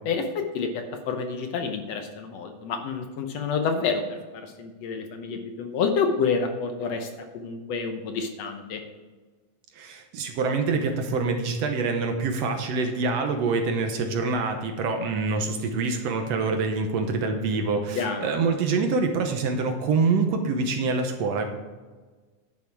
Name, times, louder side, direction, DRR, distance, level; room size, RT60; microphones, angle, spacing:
voice 1, 0.1-8.8 18.0-18.3, left 5 dB, 70° left, 5 dB, 1.9 m, -29 dB
voice 2, 9.8-21.5, right 4 dB, 70° right, 5 dB, 1.9 m, -25 dB
11.0 x 7.1 x 4.7 m, 1.3 s
omnidirectional pair, 3.3 m